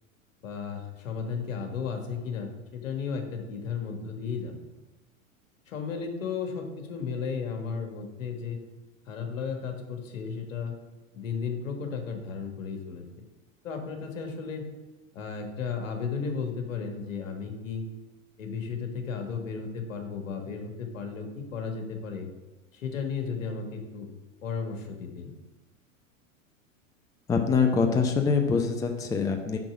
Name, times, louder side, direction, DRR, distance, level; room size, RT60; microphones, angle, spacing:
voice 1, 0.4-4.5 5.7-8.6 9.1-10.7 11.1-13.2 13.6-14.7 15.1-17.8 18.4-22.3 22.7-24.1 24.4-25.3, left 5 dB, 65° left, 4 dB, 1.6 m, -34 dB
voice 2, 27.3-29.6, left 5 dB, 10° left, 5 dB, 0.5 m, -24 dB
6.1 x 5.8 x 6.1 m, 1.1 s
figure-of-eight pair, 95°, 41 cm